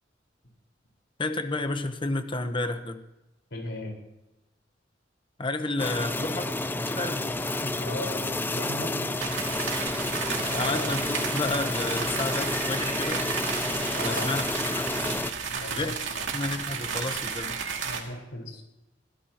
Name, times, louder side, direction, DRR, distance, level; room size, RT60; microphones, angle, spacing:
voice 1, 1.2-3.0 5.4-7.8 9.9-13.2 14.0-14.9 15.7-16.0 16.3-17.6, left 2 dB, 25° left, 8 dB, 1.1 m, -32 dB
voice 2, 3.5-3.9 7.8-9.3 10.5-10.9 13.9-14.4 15.4-16.2 16.7-17.0 17.8-18.6, left 1 dB, 70° left, 0 dB, 4.9 m, -38 dB
sound 1, 5.8-15.3, left 2 dB, 10° left, 0.5 m, -30 dB
sound 2, 9.2-18.0, right 6 dB, 90° right, 2.5 m, -33 dB
23.0 x 16.0 x 3.0 m, 0.94 s
head